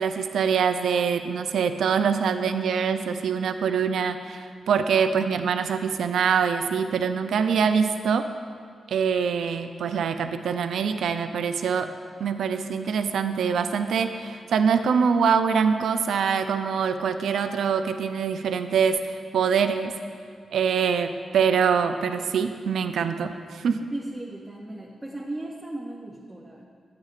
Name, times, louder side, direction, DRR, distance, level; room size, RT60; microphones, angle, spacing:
voice 1, 0.0-8.3 8.9-11.9 12.2-19.9 20.5-23.9, right 6 dB, 85° right, 8 dB, 0.4 m, -24 dB
voice 2, 23.9-26.6, right 1 dB, 10° right, -2 dB, 0.5 m, -36 dB
9.4 x 8.9 x 2.4 m, 2.1 s
wide cardioid pair, 170°, 0 cm